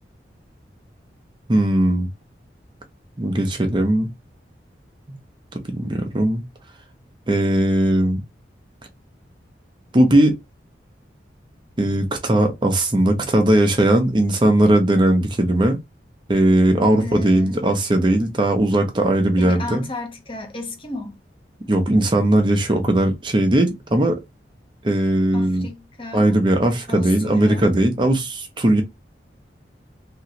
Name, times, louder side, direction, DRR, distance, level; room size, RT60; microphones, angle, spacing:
voice 1, 1.5-2.1 3.2-4.1 5.1-5.2 5.5-6.4 7.3-8.2 9.9-10.4 11.8-15.8 16.3-19.8 21.7-24.2 24.8-25.7 26.1-28.8, right 1 dB, 25° right, 0.5 m, -18 dB
voice 2, 17.0-17.6 19.4-21.2 25.3-26.3 26.9-27.7, left 2 dB, 30° left, 0.7 m, -33 dB
3.0 x 2.4 x 2.9 m
head